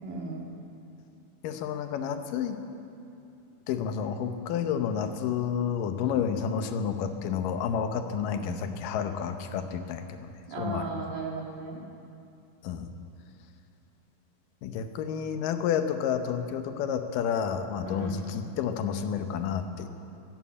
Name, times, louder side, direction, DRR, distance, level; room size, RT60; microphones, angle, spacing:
voice 1, 0.0-0.5 8.4-8.6 10.5-11.8 17.8-18.2, right 3 dB, 70° right, -1 dB, 3.5 m, -36 dB
voice 2, 1.4-2.6 3.7-10.9 12.6-12.9 14.6-19.9, left 7 dB, 80° left, 8 dB, 2.5 m, -30 dB
14.5 x 12.0 x 8.5 m, 2.7 s
omnidirectional pair, 3.9 m